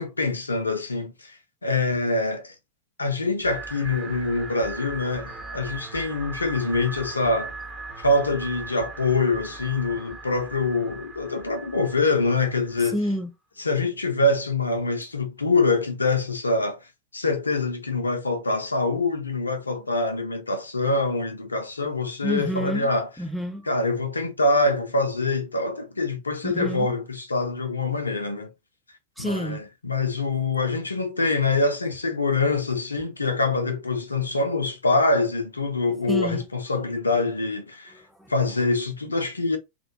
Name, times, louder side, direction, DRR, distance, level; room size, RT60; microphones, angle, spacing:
voice 1, 0.0-1.4 1.6-2.5 3.0-7.5 8.0-13.0 13.6-16.9 17.1-23.1 23.7-28.5 29.2-37.9 38.3-39.6, left 3 dB, 80° left, 0.4 m, -25 dB
sound 1, 3.4-12.9, right 3 dB, 20° right, 1.0 m, -39 dB
voice 2, 12.9-13.3 22.2-22.9 23.2-23.7 26.4-26.9 29.2-29.6 36.1-36.4 37.9-38.3, equal, ahead, 0.3 m, -29 dB
2.2 x 2.1 x 2.7 m
figure-of-eight pair, 90°, 0 cm